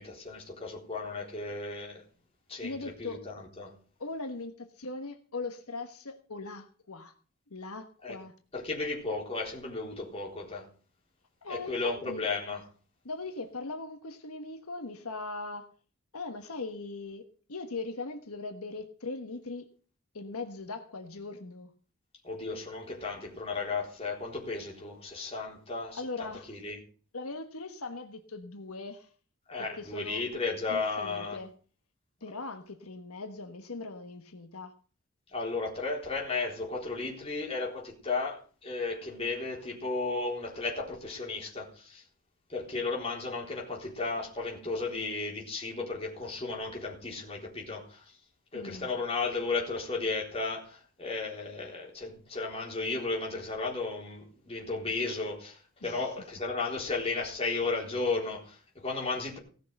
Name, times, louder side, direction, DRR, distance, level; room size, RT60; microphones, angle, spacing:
voice 1, 0.0-2.0 2.5-3.7 8.0-8.2 8.5-10.7 11.5-12.6 22.2-26.8 29.5-31.4 35.3-42.0 42.5-48.1 48.5-59.4, left 3 dB, 25° left, 3.9 m, -34 dB
voice 2, 2.6-3.2 4.0-7.1 7.5-8.3 11.4-12.2 13.0-15.7 16.1-19.7 20.1-21.7 25.9-26.6 27.1-29.1 29.6-30.2 30.7-31.5 32.2-34.7 48.5-48.9 55.8-56.1, left 3 dB, 85° left, 1.3 m, -40 dB
17.5 x 6.6 x 6.5 m
head